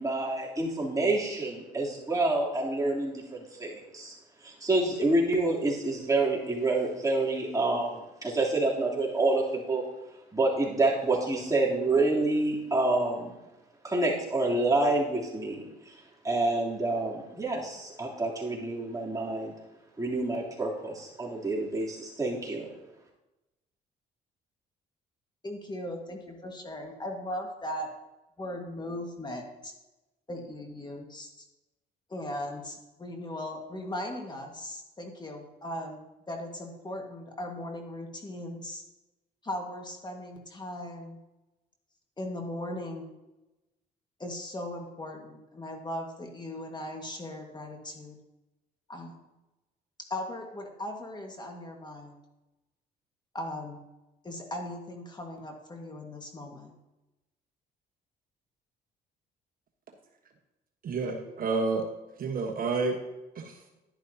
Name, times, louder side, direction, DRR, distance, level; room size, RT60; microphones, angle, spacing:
voice 1, 0.0-4.2 4.4-9.8 10.3-13.3 13.8-16.0 16.2-19.5 20.0-22.7, right 2 dB, 20° right, -4 dB, 3.3 m, -28 dB
voice 2, 25.4-27.9 28.4-29.7 30.3-31.4 32.1-38.8 39.4-41.2 42.2-43.1 44.2-48.2 48.9-49.2 50.1-52.1 53.3-53.8 54.2-56.7, left 1 dB, 25° left, 2 dB, 1.8 m, -38 dB
voice 3, 60.8-61.9 62.2-63.0 63.3-63.6, right 4 dB, 55° right, 3 dB, 1.3 m, -29 dB
11.0 x 11.0 x 2.9 m, 1.0 s
supercardioid pair, 80°, 18 cm